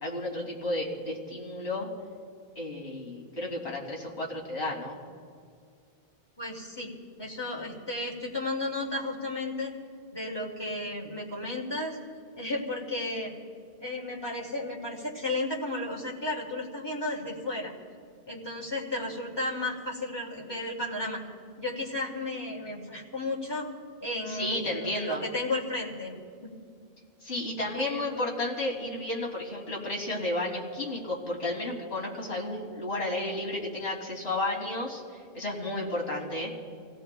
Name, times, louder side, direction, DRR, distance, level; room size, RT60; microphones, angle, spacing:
voice 1, 0.0-1.9 2.5-5.0 24.3-25.2 27.2-35.0 35.3-36.6, left 2 dB, 75° left, -2 dB, 3.1 m, -32 dB
voice 2, 6.4-6.9 7.2-9.7 10.1-12.0 12.4-13.3 13.8-17.7 18.3-21.2 21.6-23.7 24.0-26.1 26.4-26.5 27.7-28.1, left 2 dB, 25° left, -3 dB, 2.4 m, -33 dB
30.0 x 16.5 x 2.3 m, 2.2 s
omnidirectional pair, 1.1 m